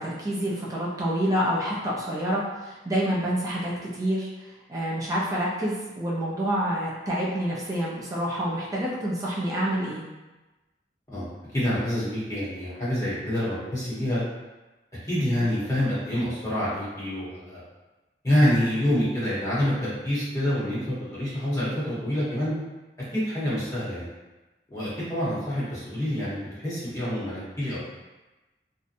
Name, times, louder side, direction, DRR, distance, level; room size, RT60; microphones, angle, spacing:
voice 1, 0.0-4.3 4.7-10.0, equal, 20° right, -6 dB, 0.4 m, -27 dB
voice 2, 11.1-14.2 15.1-17.6 18.2-22.5 23.1-24.1 24.7-27.8, equal, 20° left, -10 dB, 0.8 m, -27 dB
2.6 x 2.1 x 2.5 m, 1.1 s
head